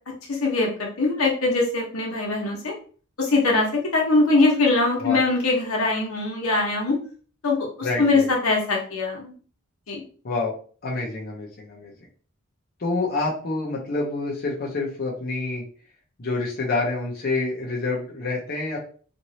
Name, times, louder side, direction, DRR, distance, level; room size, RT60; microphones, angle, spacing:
voice 1, 0.3-2.7 3.2-7.0 7.4-9.3 9.9-10.0, left 3 dB, 85° left, -2 dB, 1.1 m, -22 dB
voice 2, 7.8-8.3 10.2-10.6 10.8-11.9 12.8-15.6 16.2-18.8, left 3 dB, 45° left, -3 dB, 0.7 m, -27 dB
3.0 x 2.6 x 2.7 m, 0.43 s
head